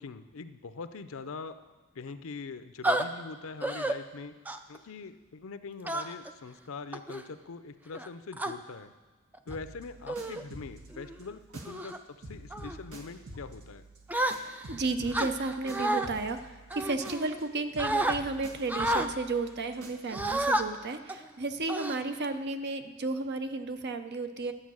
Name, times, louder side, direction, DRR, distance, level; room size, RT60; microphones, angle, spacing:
voice 1, 0.0-1.6 1.9-4.3 4.7-8.9 9.5-13.8, left 4 dB, 65° left, 11 dB, 0.6 m, -43 dB
sound 1, 2.8-3.0 3.6-3.9 4.5-4.8 5.9-6.3 6.9-7.2 7.9-8.5 9.3-9.6 10.1-10.4 10.9-11.2 11.7-12.0 12.5-12.8 14.1-14.7 15.1-16.1 16.7-17.5 17.8-18.2 18.7-19.1 20.1-20.6 21.1-21.3 21.7-22.4, right 1 dB, 10° right, 0.4 m, -30 dB
sound 2, 9.5-12.0 12.2-17.5 17.7-20.5, right 1 dB, 90° right, 1.7 m, -48 dB
voice 2, 14.2-24.5, right 3 dB, 50° right, 9 dB, 0.7 m, -33 dB
11.5 x 7.8 x 6.3 m, 1.2 s
head